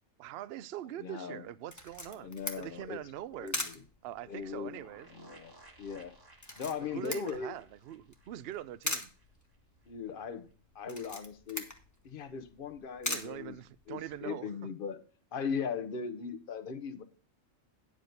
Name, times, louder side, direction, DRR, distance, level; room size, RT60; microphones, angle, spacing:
voice 1, 0.2-3.6 4.0-5.1 6.8-9.1 13.1-14.5, right 12 dB, 65° right, 0.7 m, -43 dB
voice 2, 1.0-1.4 2.1-3.0 3.3-3.7 4.3-4.8 5.1-5.5 5.8-6.1 6.6-7.5 9.9-10.5 10.7-11.7 12.0-13.6 13.9-15.0 15.3-17.0, left 6 dB, 50° left, 1.0 m, -38 dB
Camera, 1.7-14.2, left 1 dB, 15° left, 1.0 m, -43 dB
sound 1, 4.6-9.2 9.5-9.6 9.8-9.9, right 1 dB, 20° right, 1.3 m, -58 dB
9.2 x 5.0 x 6.5 m
omnidirectional pair, 1.3 m